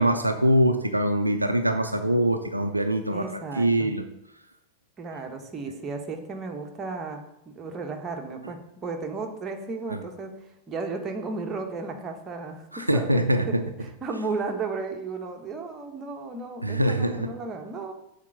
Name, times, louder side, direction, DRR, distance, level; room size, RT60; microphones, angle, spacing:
voice 1, 0.0-3.2 3.6-4.0 12.7-13.6 16.6-17.3, right 1 dB, 85° right, 7 dB, 0.5 m, -23 dB
voice 2, 3.1-3.9 5.0-7.2 7.4-10.3 10.7-13.5 13.8-17.9, right 4 dB, 25° right, 3 dB, 1.2 m, -34 dB
7.3 x 4.4 x 6.4 m, 0.82 s
figure-of-eight pair, 90°, 0 cm